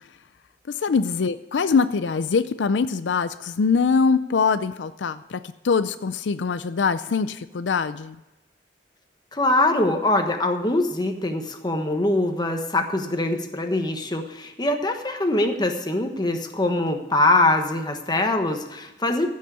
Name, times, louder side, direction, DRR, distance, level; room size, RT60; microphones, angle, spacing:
voice 1, 0.7-8.2, left 5 dB, 80° left, 13 dB, 0.5 m, -23 dB
voice 2, 9.3-19.3, left 2 dB, 25° left, 5 dB, 1.2 m, -23 dB
14.5 x 6.5 x 6.9 m, 0.97 s
head